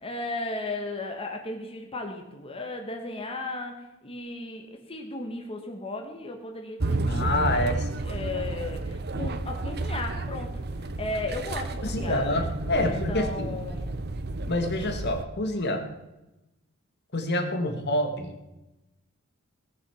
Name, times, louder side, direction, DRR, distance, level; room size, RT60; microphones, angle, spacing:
voice 1, 0.0-7.8 8.1-10.5 10.8-12.5 12.8-13.9, left 2 dB, 25° left, 2 dB, 1.6 m, -35 dB
sound 1, 6.8-15.2, right 2 dB, 50° right, 0.9 m, -31 dB
voice 2, 7.1-7.8 11.8-13.6 14.5-15.9 17.1-18.4, left 1 dB, 55° left, 5 dB, 1.8 m, -27 dB
18.0 x 6.9 x 7.2 m, 0.99 s
head